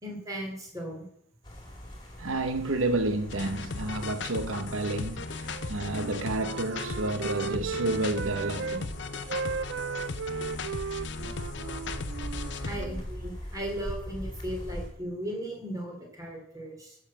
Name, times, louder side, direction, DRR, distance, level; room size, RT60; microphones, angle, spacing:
voice 1, 0.0-1.0 12.6-17.0, right 1 dB, 15° right, 2.7 m, -37 dB
sound 1, 1.4-14.9, equal, 20° left, 2.6 m, -42 dB
voice 2, 2.2-8.9, right 2 dB, 85° right, 0.9 m, -30 dB
sound 2, 3.3-12.9, left 4 dB, 60° left, 0.7 m, -37 dB
Wind instrument woodwind instrument, 5.4-8.8 9.1-13.1, right 6 dB, 60° right, 0.3 m, -36 dB
10.0 x 6.4 x 7.4 m
head